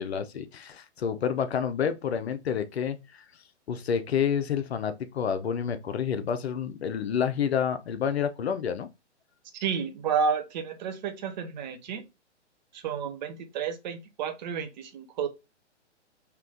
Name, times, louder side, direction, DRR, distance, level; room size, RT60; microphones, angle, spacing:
voice 1, 0.0-3.2 3.7-8.9, left 7 dB, 60° left, 0.7 m, -29 dB
voice 2, 9.6-12.0 12.7-15.3, right 6 dB, 40° right, 0.8 m, -31 dB
3.3 x 2.9 x 3.7 m
figure-of-eight pair, 125°, 36 cm